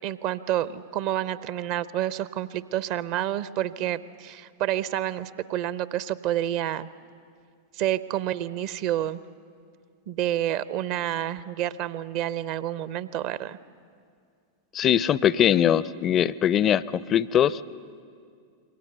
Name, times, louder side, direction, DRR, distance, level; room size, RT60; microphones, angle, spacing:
voice 1, 0.0-6.9 7.7-9.2 10.1-13.6, right 12 dB, 45° right, 17 dB, 0.6 m, -29 dB
voice 2, 14.7-17.6, left 10 dB, 30° left, 20 dB, 0.5 m, -21 dB
27.5 x 23.0 x 6.8 m, 2.2 s
figure-of-eight pair, 90°, 0 cm